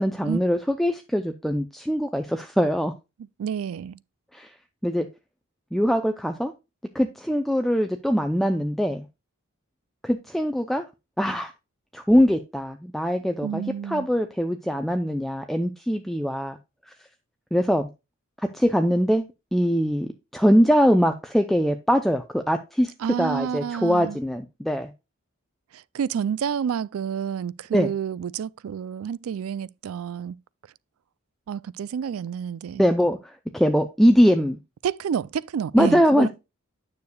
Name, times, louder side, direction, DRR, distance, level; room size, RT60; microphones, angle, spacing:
voice 1, 0.0-2.9 4.3-4.5 4.8-5.1 5.7-6.5 6.9-9.0 10.0-10.8 11.2-11.5 11.9-16.6 17.5-17.9 18.5-19.2 19.5-22.9 23.2-24.9 27.7-27.9 32.8-34.6 35.7-36.3, equal, ahead, 0.4 m, -22 dB
voice 2, 3.4-4.0 13.4-14.1 23.0-24.2 25.7-30.4 31.5-32.8 34.8-36.3, right 7 dB, 75° right, 0.3 m, -29 dB
9.5 x 6.6 x 2.2 m
head